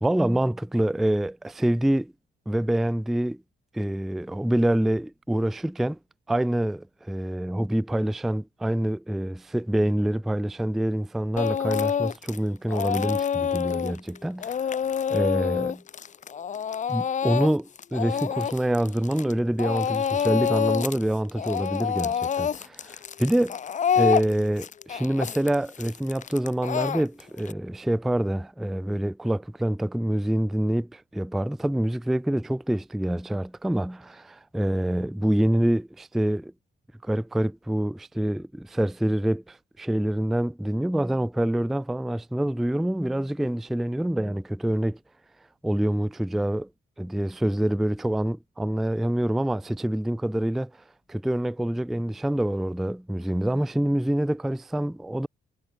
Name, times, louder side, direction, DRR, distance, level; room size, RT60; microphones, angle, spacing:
voice 1, 0.0-2.1 2.5-3.4 3.7-6.0 6.3-14.6 15.1-15.8 16.9-23.6 24.0-36.5 37.0-45.0 45.6-46.7 47.0-50.7 51.1-55.3, right 1 dB, ahead, 0.3 m, -26 dB
Speech / Crying sobbing, 11.4-12.4 12.7-19.3 19.6-21.0 21.3-27.5, left 8 dB, 40° left, 0.6 m, -27 dB
cardioid pair, 90°, 20 cm